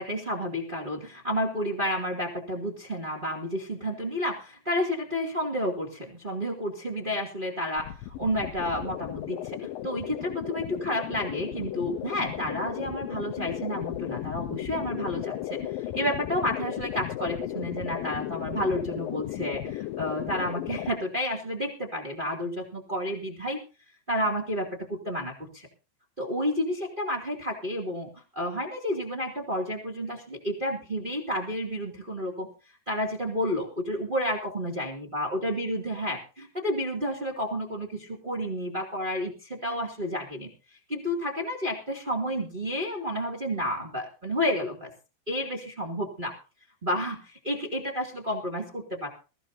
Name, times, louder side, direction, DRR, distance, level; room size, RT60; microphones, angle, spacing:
voice 1, 0.0-23.6 24.1-25.7 26.2-32.5 32.9-40.5 40.9-44.9 45.3-46.3 46.8-49.1, equal, 15° right, 0 dB, 1.8 m, -31 dB
sound 1, 7.8-20.9, left 14 dB, 75° left, 2.2 m, -35 dB
21.0 x 14.5 x 2.8 m, 0.34 s
omnidirectional pair, 4.9 m